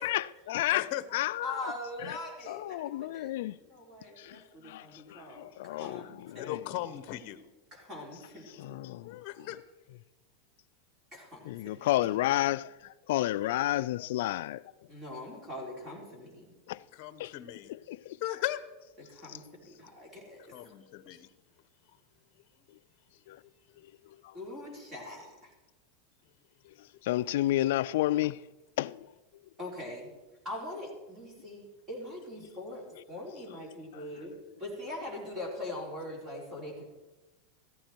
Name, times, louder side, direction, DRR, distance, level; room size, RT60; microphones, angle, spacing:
voice 1, 0.0-1.7 2.0-2.2 2.5-3.6 4.2-6.6 8.6-9.5 11.5-14.6 16.7-16.8 17.2-17.3 17.7-18.2 19.3-19.4 23.3-23.4 23.8-24.4 26.7-28.4 28.8-29.1 33.9-34.0, left 15 dB, 65° left, 0.3 m, -32 dB
voice 2, 0.7-1.0 6.4-7.4 9.0-9.6 16.9-17.7 18.2-18.6 20.5-21.3, left 15 dB, 45° left, 0.9 m, -37 dB
voice 3, 1.4-6.6 7.7-8.6 11.1-12.1 14.9-16.5 19.1-20.7 24.3-25.5 29.6-30.1 30.4-32.8 33.1-36.8, left 1 dB, 20° right, 4.5 m, -42 dB
14.5 x 14.5 x 4.6 m
supercardioid pair, 160°, 0 cm